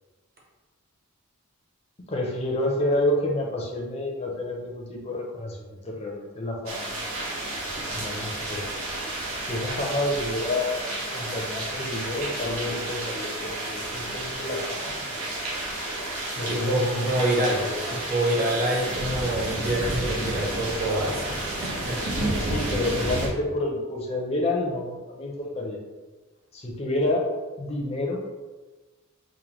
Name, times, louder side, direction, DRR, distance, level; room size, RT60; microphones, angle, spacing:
voice 1, 2.1-7.3 7.9-8.6 9.5-15.3 16.4-17.8 22.4-25.8 26.5-27.3 27.6-28.2, left 1 dB, 30° left, -1 dB, 0.6 m, -29 dB
sound 1, 6.7-23.3, right 1 dB, 85° right, 1.1 m, -31 dB
voice 2, 16.5-17.6 17.9-22.0, right 1 dB, 40° right, -4 dB, 1.0 m, -26 dB
4.9 x 2.2 x 3.0 m, 1.2 s
head